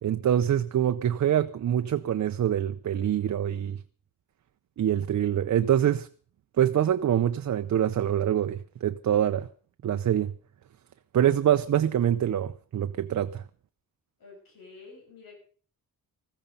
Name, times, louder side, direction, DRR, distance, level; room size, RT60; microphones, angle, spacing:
voice 1, 0.0-3.8 4.8-6.1 6.6-9.5 9.8-10.3 11.1-13.4, right 10 dB, 55° right, 0.6 m, -25 dB
voice 2, 14.2-15.4, left 4 dB, 85° left, 7.5 m, -49 dB
14.5 x 14.5 x 5.5 m
wide cardioid pair, 165°, 34 cm